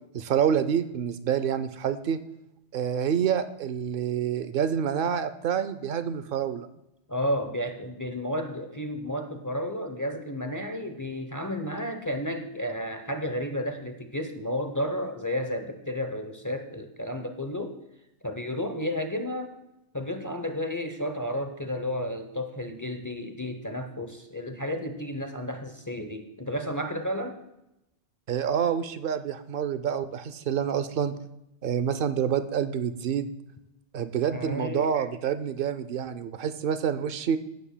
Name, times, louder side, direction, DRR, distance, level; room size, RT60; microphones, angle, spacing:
voice 1, 0.1-2.2 2.7-6.7 28.3-31.1 31.6-33.3 33.9-37.4, right 8 dB, 55° right, 12 dB, 0.7 m, -27 dB
voice 2, 7.1-17.8 18.2-19.6 19.9-27.4 34.3-34.9, left 1 dB, 20° left, 6 dB, 0.6 m, -32 dB
16.5 x 8.8 x 2.2 m, 0.89 s
omnidirectional pair, 1.2 m